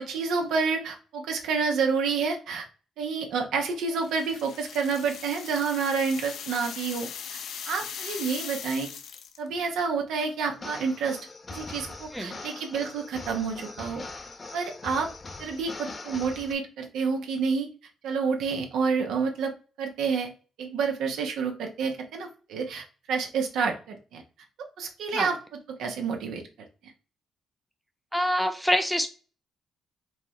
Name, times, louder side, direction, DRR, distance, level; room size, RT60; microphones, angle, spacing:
voice 1, 0.0-2.7 3.0-7.4 7.7-8.9 9.4-11.2 11.5-14.0 14.5-15.1 15.4-17.7 18.0-20.3 20.6-24.2 24.8-25.4 25.8-26.4, right 5 dB, 80° right, 4 dB, 1.1 m, -29 dB
sound 1, 3.9-9.5, left 7 dB, 70° left, 0.7 m, -39 dB
sound 2, 10.5-16.5, left 3 dB, 30° left, 0.9 m, -41 dB
voice 2, 28.1-29.1, equal, ahead, 7 dB, 0.8 m, -25 dB
4.7 x 2.4 x 4.3 m, 0.35 s
cardioid pair, 90°, 0 cm